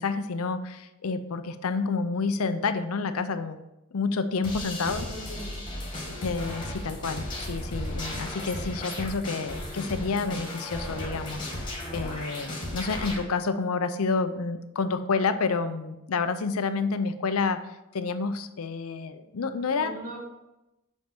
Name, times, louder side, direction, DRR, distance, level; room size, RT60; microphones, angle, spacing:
voice 1, 0.0-3.6 3.9-5.1 6.2-17.6 17.9-19.9, left 4 dB, 80° left, 10 dB, 0.6 m, -29 dB
sound 1, 4.4-13.2, left 1 dB, 20° left, 1.8 m, -35 dB
voice 2, 4.8-5.7 19.8-20.2, right 1 dB, 40° right, -3 dB, 2.2 m, -41 dB
6.3 x 5.3 x 6.0 m, 0.94 s
head